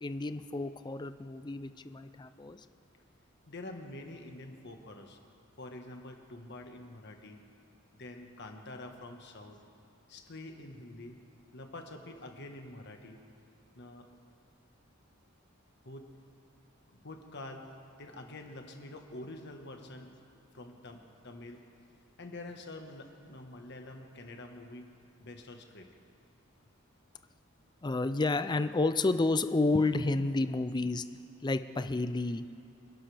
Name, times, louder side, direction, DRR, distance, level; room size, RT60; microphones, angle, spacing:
voice 1, 0.0-2.6 27.8-31.0 31.4-32.4, left 2 dB, 20° left, 10 dB, 0.5 m, -30 dB
voice 2, 3.5-5.2 5.6-7.4 8.0-9.6 10.1-11.2 11.5-13.2 13.7-14.1 15.8-16.1 16.9-17.7 18.0-20.1 20.5-21.6 22.2-24.9 25.2-25.9, left 2 dB, 60° left, 3 dB, 1.5 m, -46 dB
26.5 x 11.5 x 3.5 m, 2.4 s
head